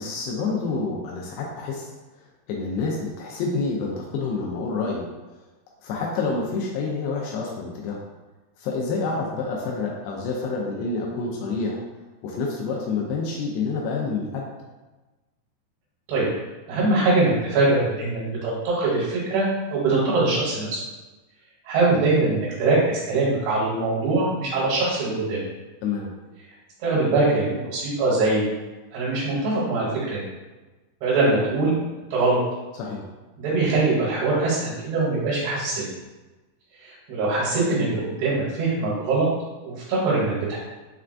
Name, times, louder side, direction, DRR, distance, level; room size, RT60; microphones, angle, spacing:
voice 1, 0.0-1.9 2.5-5.1 5.8-8.0 8.6-11.8 12.2-14.5 25.8-26.1 32.8-33.0, left 4 dB, 85° left, -2 dB, 2.5 m, -28 dB
voice 2, 16.7-20.8 21.7-25.4 26.8-28.4 28.9-30.3 31.0-31.7 32.1-32.4 33.4-35.9 36.8-39.3 39.7-40.6, right 3 dB, 80° right, -7 dB, 3.0 m, -22 dB
6.5 x 2.2 x 2.4 m, 1.2 s
omnidirectional pair, 4.6 m